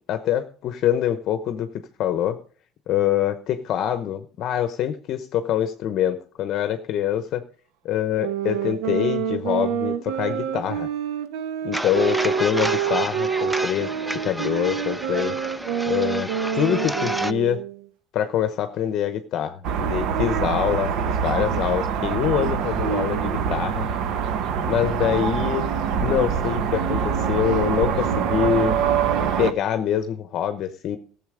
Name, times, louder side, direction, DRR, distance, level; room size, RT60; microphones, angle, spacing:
voice 1, 0.1-1.7 2.0-2.4 2.9-7.4 7.8-10.9 11.6-13.9 14.2-15.4 15.9-17.6 18.1-23.9 24.6-25.6 26.0-28.8 29.2-31.0, left 10 dB, 50° left, 9 dB, 0.9 m, -25 dB
sound 1, 8.2-17.8, right 8 dB, 90° right, 1.0 m, -27 dB
sound 2, 11.7-17.3, equal, 5° right, 0.5 m, -30 dB
sound 3, 19.6-29.5, right 7 dB, 60° right, 1.0 m, -24 dB
14.0 x 7.3 x 5.0 m, 0.42 s
cardioid pair, 140°, 0 cm